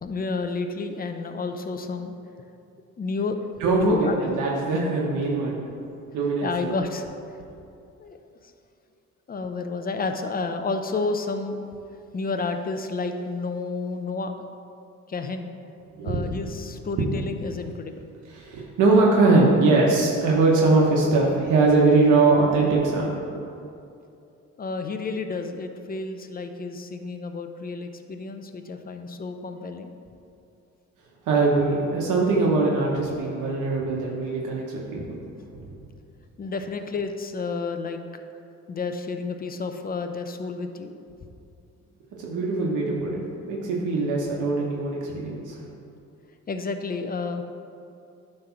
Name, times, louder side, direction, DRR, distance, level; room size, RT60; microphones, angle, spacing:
voice 1, 0.0-2.1 3.0-3.4 3.8-4.1 6.4-7.1 8.0-8.5 9.3-11.6 12.1-14.3 15.1-15.5 16.0-18.1 24.6-29.9 36.4-38.0 38.7-41.0 46.5-47.4, left 4 dB, 30° left, 7 dB, 0.6 m, -30 dB
voice 2, 3.6-5.6 6.1-6.7 16.0-16.3 17.0-17.1 18.3-23.1 31.3-35.1 35.5-35.6 42.2-43.2 43.5-45.6, right 3 dB, 85° right, -3 dB, 1.1 m, -21 dB
9.5 x 3.4 x 5.8 m, 2.6 s
cardioid pair, 90°, 30 cm